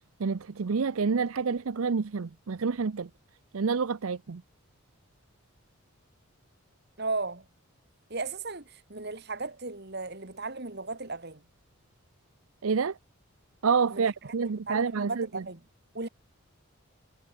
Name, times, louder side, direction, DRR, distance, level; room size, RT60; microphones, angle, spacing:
voice 1, 0.2-3.1 3.5-4.4 12.6-13.0 13.6-15.4, right 5 dB, 75° right, 0.6 m, -28 dB
voice 2, 7.0-7.4 8.1-11.4 13.9-15.6 15.9-16.1, right 3 dB, 50° right, 1.8 m, -36 dB
head